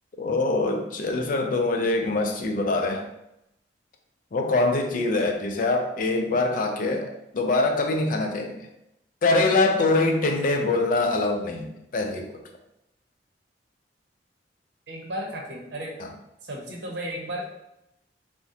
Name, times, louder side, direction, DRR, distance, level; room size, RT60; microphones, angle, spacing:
voice 1, 0.2-3.1 4.3-8.6 9.2-12.2 16.0-16.1, left 2 dB, 50° left, 3 dB, 0.5 m, -24 dB
voice 2, 14.9-15.9 16.4-17.4, equal, 65° right, -1 dB, 0.8 m, -34 dB
2.8 x 2.1 x 3.6 m, 0.84 s
head